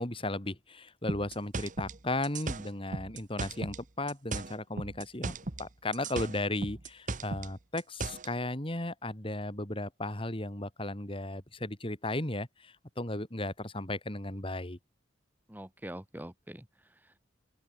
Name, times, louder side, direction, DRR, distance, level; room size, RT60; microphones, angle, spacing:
voice 1, 0.0-14.8, left 2 dB, 30° left, 3.7 m, -35 dB
sound 1, 1.1-3.8 4.1-5.7 5.9-8.3, right 3 dB, 45° right, 1.2 m, -37 dB
voice 2, 15.5-17.2, right 1 dB, 10° right, 2.2 m, -45 dB
open air
head